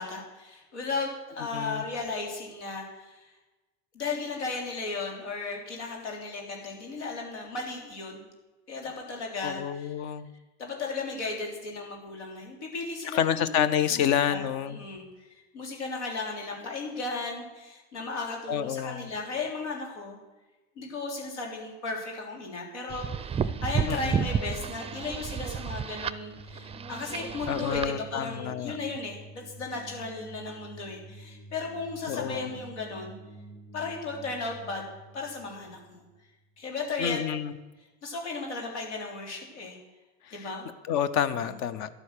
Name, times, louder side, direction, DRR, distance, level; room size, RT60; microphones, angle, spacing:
voice 1, 0.0-3.3 3.9-8.3 8.7-9.9 10.6-20.2 20.8-33.2 33.7-34.9 35.1-36.0 36.6-37.2 38.0-39.8 40.3-40.7 41.3-41.5, left 3 dB, 90° left, 1 dB, 3.5 m, -35 dB
voice 2, 1.5-1.8 9.4-10.3 13.1-14.9 18.5-19.1 23.9-24.2 27.5-28.8 32.1-32.5 37.0-37.5 40.3-40.5 40.9-41.9, left 9 dB, 55° left, 14 dB, 0.9 m, -28 dB
sound 1, 22.9-27.9, right 7 dB, 20° right, 0.4 m, -31 dB
sound 2, 23.5-36.6, right 2 dB, 25° left, 1.6 m, -48 dB
12.0 x 8.3 x 6.6 m, 1.1 s
hypercardioid pair, 95°, 34 cm